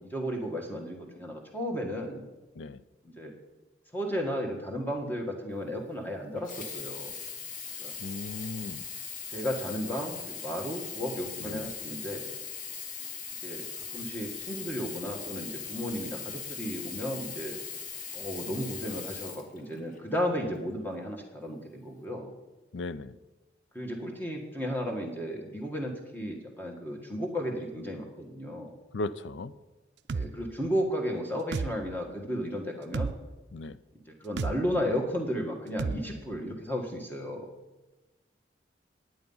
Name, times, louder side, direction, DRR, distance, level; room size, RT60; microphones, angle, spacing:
voice 1, 0.0-2.2 3.0-3.3 3.9-7.1 7.8-7.9 9.3-12.3 13.4-13.6 13.9-17.6 18.1-22.3 23.7-28.7 30.1-33.1 34.2-37.5, equal, 10° left, 1 dB, 1.5 m, -34 dB
Sink (filling or washing), 6.4-20.1 20.9-21.0, left 6 dB, 45° left, 1.0 m, -40 dB
voice 2, 8.0-8.8 11.4-11.7 22.7-23.2 28.9-29.5 33.5-33.8, left 2 dB, 85° left, 16 dB, 0.5 m, -37 dB
sound 1, 30.1-30.3 31.5-31.7 32.9-33.1 34.4-34.6 35.8-36.0, right 4 dB, 70° right, 0.4 m, -30 dB
10.5 x 9.1 x 5.5 m, 1.1 s
head